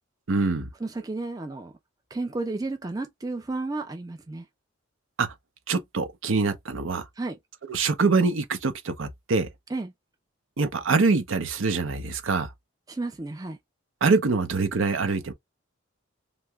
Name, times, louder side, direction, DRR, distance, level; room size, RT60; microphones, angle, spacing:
voice 1, 0.3-0.7 5.2-5.3 5.7-7.0 7.7-9.5 10.6-12.5 14.0-15.3, right 4 dB, 75° right, 0.6 m, -24 dB
voice 2, 0.8-1.7 2.1-4.5 7.2-7.4 9.7-9.9 12.9-13.6, right 2 dB, 20° right, 0.4 m, -32 dB
2.8 x 2.1 x 3.4 m
head